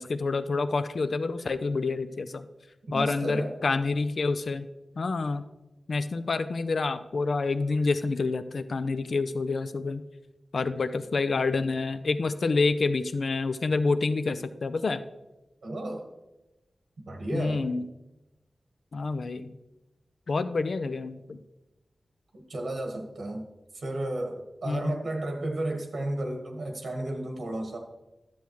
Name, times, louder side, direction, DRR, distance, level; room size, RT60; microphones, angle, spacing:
voice 1, 0.0-2.4 2.9-4.7 5.0-5.4 5.9-10.0 10.5-15.0 17.3-17.9 18.9-19.5 20.3-21.4 24.6-25.0, left 3 dB, 75° left, 11 dB, 0.4 m, -28 dB
voice 2, 2.9-3.5 15.6-16.1 17.1-17.6 22.3-23.4 23.7-27.8, right 1 dB, 85° right, 2 dB, 1.3 m, -33 dB
11.5 x 7.0 x 3.1 m, 1.0 s
wide cardioid pair, 65°, 0 cm